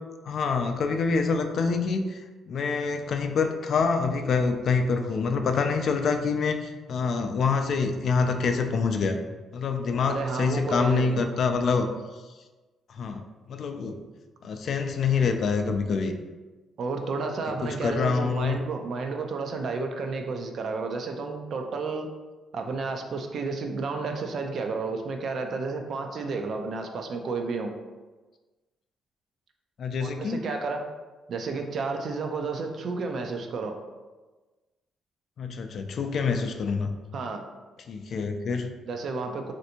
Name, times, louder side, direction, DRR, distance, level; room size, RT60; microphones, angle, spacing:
voice 1, 0.2-9.2 9.5-11.9 12.9-13.2 13.5-14.0 14.4-16.1 17.6-18.6 29.8-30.4 35.4-36.9 37.9-38.7, left 5 dB, 60° left, 6 dB, 0.3 m, -26 dB
voice 2, 10.0-11.3 16.8-22.1 22.5-27.7 30.0-30.8 31.3-33.8 37.1-37.4 38.9-39.5, right 4 dB, 60° right, 4 dB, 0.4 m, -31 dB
3.2 x 2.6 x 2.8 m, 1.2 s
cardioid pair, 90°, 0 cm